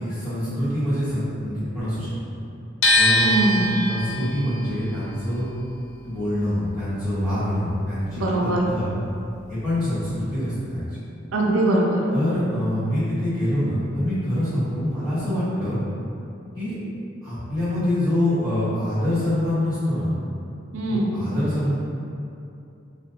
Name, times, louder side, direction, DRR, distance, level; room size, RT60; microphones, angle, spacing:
voice 1, 0.0-2.4 2.9-3.5 3.9-5.5 6.0-8.9 9.5-11.0 12.1-15.8 16.5-16.7 17.2-20.1 20.9-21.8, left 1 dB, 20° left, -16 dB, 1.4 m, -25 dB
sound 1, 2.8-8.9 9.1-10.4, left 1 dB, 85° left, 0.4 m, -25 dB
voice 2, 3.1-3.8 8.2-8.6 11.3-12.1 20.7-21.1, right 1 dB, 85° right, -2 dB, 0.4 m, -22 dB
2.5 x 2.1 x 2.7 m, 2.7 s
head